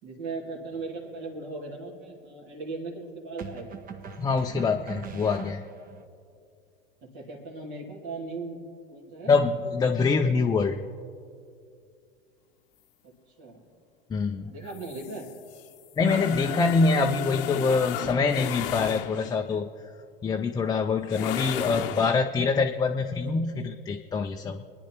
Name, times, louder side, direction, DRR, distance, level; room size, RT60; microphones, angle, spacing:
voice 1, 0.0-3.8 7.1-8.6 8.9-9.3 13.4-13.6 14.5-15.3 20.4-20.5, right 3 dB, 60° right, -2 dB, 2.5 m, -38 dB
sound 1, 0.7-1.0 3.4-6.0, right 6 dB, 30° right, 0.9 m, -42 dB
voice 2, 4.2-5.6 9.3-10.8 14.1-14.5 16.0-19.7 20.2-24.6, left 4 dB, 15° left, 4 dB, 0.4 m, -25 dB
sound 2, 14.7-19.5 21.1-22.3, left 11 dB, 65° left, 0.8 m, -35 dB
27.0 x 10.0 x 3.0 m, 2.4 s
hypercardioid pair, 95°, 30 cm